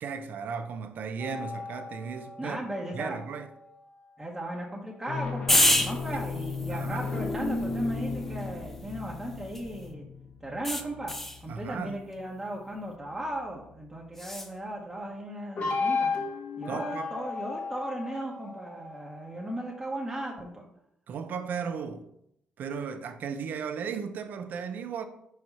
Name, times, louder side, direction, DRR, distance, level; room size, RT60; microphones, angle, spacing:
voice 1, 0.0-2.6 2.9-3.5 6.1-6.2 6.7-7.1 11.5-12.0 16.7-17.1 21.1-22.0 22.6-25.0, right 6 dB, 65° right, 0.7 m, -35 dB
sound 1, 1.2-3.8 4.9-11.7 15.6-19.8, left 4 dB, 50° left, 2.1 m, -35 dB
voice 2, 2.4-3.2 4.2-10.1 10.4-11.1 11.4-16.2 16.6-20.6, right 1 dB, 10° right, 1.2 m, -37 dB
sound 2, 5.5-9.9 10.6-11.4 14.2-14.5, left 1 dB, 10° left, 0.6 m, -30 dB
4.8 x 4.6 x 5.5 m
cardioid pair, 100°, 3 cm